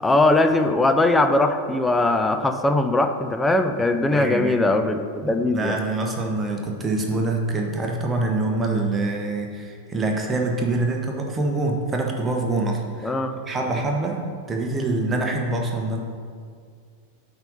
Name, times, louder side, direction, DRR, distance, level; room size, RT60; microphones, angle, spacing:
voice 1, 0.0-5.8 13.0-13.4, left 2 dB, 10° left, 8 dB, 0.5 m, -20 dB
voice 2, 4.1-4.6 5.2-13.2 13.5-14.2 14.5-16.0, right 2 dB, 15° right, 1 dB, 1.1 m, -25 dB
8.8 x 4.0 x 5.4 m, 2.1 s
figure-of-eight pair, 90°, 0 cm